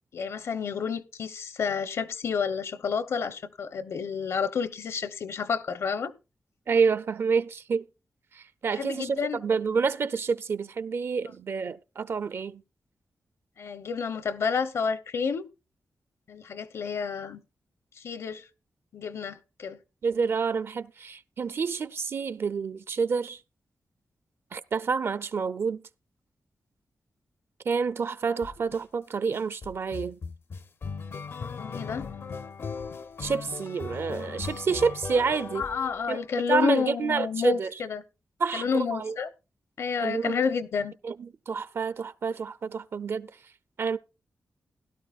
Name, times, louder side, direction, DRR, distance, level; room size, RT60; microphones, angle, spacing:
voice 1, 0.1-6.1 8.7-9.4 13.6-15.5 16.3-17.4 18.0-18.5 18.9-19.8 31.6-32.1 35.5-38.0 38.5-39.3 39.8-40.9, left 6 dB, 75° left, 0.9 m, -30 dB
voice 2, 6.7-7.9 8.3-12.6 20.0-23.4 24.5-25.8 27.7-30.2 33.2-35.6 36.1-37.7 38.4-39.1 40.0-40.4 41.0-43.3 43.8-44.0, right 5 dB, 55° right, 0.5 m, -28 dB
sound 1, 28.4-28.8 29.3-36.5, left 5 dB, 55° left, 0.5 m, -38 dB
16.5 x 12.0 x 2.4 m
wide cardioid pair, 120°, 5 cm